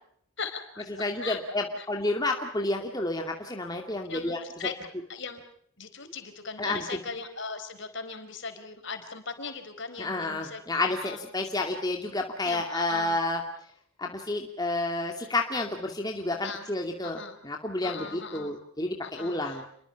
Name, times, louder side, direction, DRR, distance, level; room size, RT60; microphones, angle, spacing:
voice 1, 0.4-0.8 1.2-1.4 1.7-1.9 4.1-5.4 5.8-11.2 12.4-13.2 16.4-16.7 17.0-17.4 17.8-18.5 19.0-19.6, left 5 dB, 55° left, 8 dB, 4.4 m, -39 dB
voice 2, 1.0-4.4 6.6-6.8 10.0-13.4 14.0-19.6, left 2 dB, 20° left, 2 dB, 2.4 m, -30 dB
29.5 x 22.5 x 5.9 m, 0.65 s
head